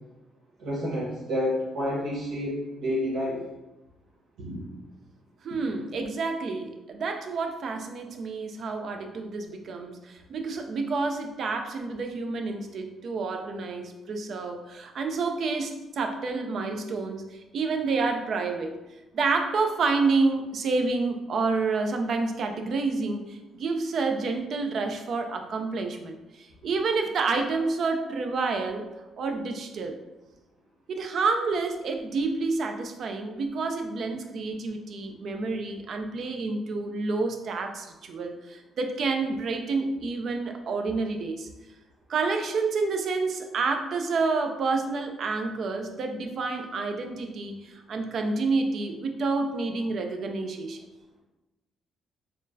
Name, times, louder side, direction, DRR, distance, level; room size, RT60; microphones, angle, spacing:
voice 1, 0.6-3.4 4.4-4.6, left 1 dB, 80° right, -6 dB, 1.1 m, -29 dB
voice 2, 5.4-18.8 19.1-28.9 29.2-30.0 30.9-41.5 42.1-50.8, right 3 dB, 60° right, 5 dB, 0.5 m, -29 dB
4.3 x 3.1 x 2.7 m, 1.0 s
cardioid pair, 90°, 0 cm